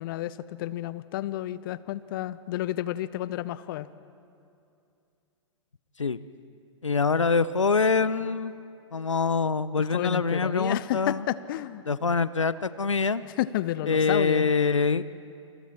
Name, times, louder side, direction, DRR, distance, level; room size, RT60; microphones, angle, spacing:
voice 1, 0.0-3.9 9.8-11.8 13.4-14.5, left 14 dB, 45° left, 17 dB, 0.7 m, -31 dB
voice 2, 6.8-8.5 8.9-11.2 11.9-13.2 13.9-15.0, left 4 dB, 85° left, 16 dB, 0.6 m, -24 dB
29.0 x 27.5 x 4.4 m, 2.6 s
figure-of-eight pair, 105°, 16 cm